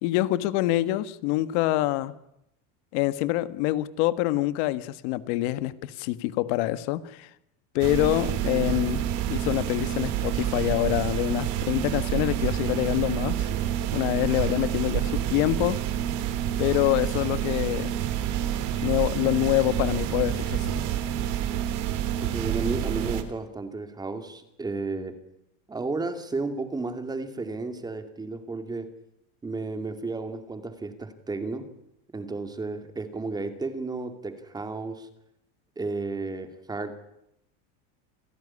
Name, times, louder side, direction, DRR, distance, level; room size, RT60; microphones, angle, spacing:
voice 1, 0.0-2.1 2.9-7.3 7.7-9.0 9.3-13.5 13.9-15.8 16.6-17.9 18.8-20.8, left 16 dB, 65° left, 1.7 m, -26 dB
sound 1, 7.8-23.2, right 11 dB, 55° right, 3.3 m, -28 dB
voice 2, 22.2-25.2 25.7-28.9 29.4-31.7 32.1-35.1 35.8-37.0, right 3 dB, 10° right, 2.5 m, -33 dB
28.0 x 17.0 x 9.9 m
cardioid pair, 165°, 37 cm